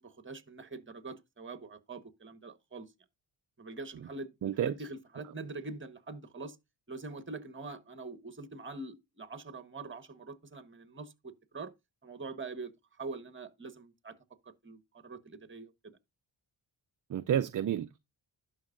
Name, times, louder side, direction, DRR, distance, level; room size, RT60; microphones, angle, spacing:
voice 1, 0.0-2.9 3.6-6.6 6.9-11.7 12.0-14.1 14.6-16.0, right 3 dB, 25° right, 1.3 m, -44 dB
voice 2, 4.4-4.7 17.1-18.0, right 10 dB, 45° right, 0.5 m, -30 dB
11.5 x 5.4 x 2.5 m
cardioid pair, 70°, 47 cm